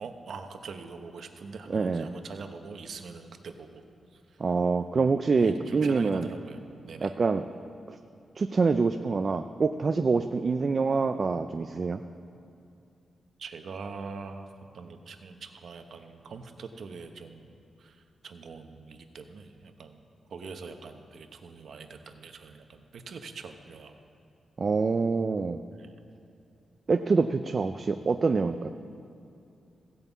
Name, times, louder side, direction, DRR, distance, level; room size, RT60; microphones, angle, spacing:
voice 1, 0.0-3.8 4.1-4.4 5.3-6.6 6.8-7.1 13.4-14.5 14.7-17.5 17.8-20.0 20.3-24.0 25.8-25.9, right 4 dB, 60° right, 6 dB, 0.9 m, -43 dB
voice 2, 1.7-2.1 4.4-6.3 7.0-7.4 8.4-12.0 24.6-25.6 26.9-28.7, right 4 dB, 35° right, 8 dB, 0.3 m, -26 dB
15.5 x 5.4 x 8.1 m, 2.6 s
wide cardioid pair, 155°, 0 cm